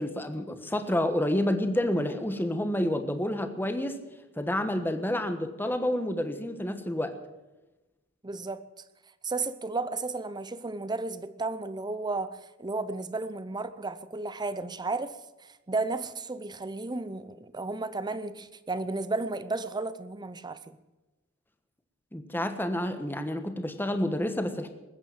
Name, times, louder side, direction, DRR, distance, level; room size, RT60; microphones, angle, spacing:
voice 1, 0.0-4.0 4.4-7.1 22.1-24.7, left 1 dB, 10° left, 1.3 m, -29 dB
voice 2, 8.2-8.6 9.2-20.8, right 3 dB, 20° right, 0.7 m, -33 dB
20.5 x 8.8 x 7.5 m
head